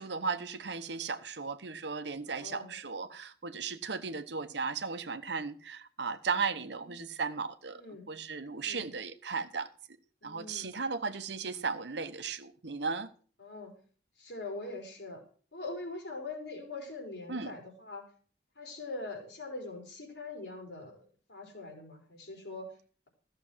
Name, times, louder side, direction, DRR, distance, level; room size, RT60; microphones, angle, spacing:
voice 1, 0.0-9.7 10.2-13.1 17.3-17.5, right 5 dB, 80° right, 1.0 m, -36 dB
voice 2, 2.3-2.7 6.8-6.9 7.7-8.1 8.5-8.9 10.2-10.7 13.4-13.7 14.2-15.2 15.5-18.0 18.6-22.7, left 3 dB, 75° left, 4.3 m, -43 dB
14.5 x 6.8 x 6.2 m
head